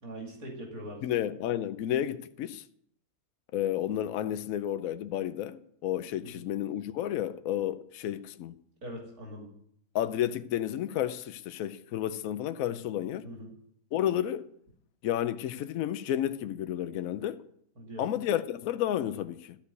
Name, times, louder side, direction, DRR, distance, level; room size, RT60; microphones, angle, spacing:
voice 1, 0.0-1.4 6.2-6.5 8.8-9.5 13.2-13.5 17.8-18.1, equal, 75° right, 3.0 m, -42 dB
voice 2, 1.0-2.6 3.5-8.5 9.9-13.3 13.9-14.5 15.0-17.4 18.0-19.6, left 11 dB, 70° left, 1.0 m, -31 dB
13.0 x 4.7 x 8.1 m
omnidirectional pair, 1.6 m